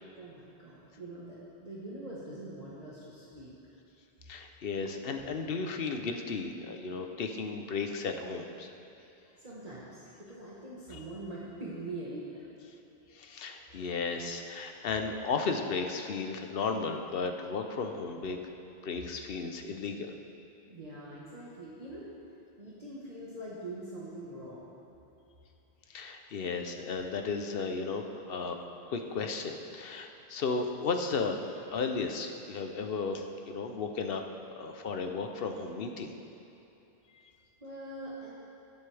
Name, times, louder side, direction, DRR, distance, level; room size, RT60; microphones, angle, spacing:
voice 1, 0.2-3.5 9.4-12.5 20.7-22.1 22.6-24.7 37.6-38.3, right 1 dB, 40° right, -8 dB, 1.4 m, -43 dB
voice 2, 4.3-8.7 10.9-11.0 13.1-18.4 18.8-20.1 25.9-28.6 28.9-34.2 34.6-36.1 37.1-37.3, left 4 dB, 65° left, 5 dB, 0.9 m, -34 dB
16.5 x 8.0 x 3.4 m, 2.9 s
omnidirectional pair, 1.1 m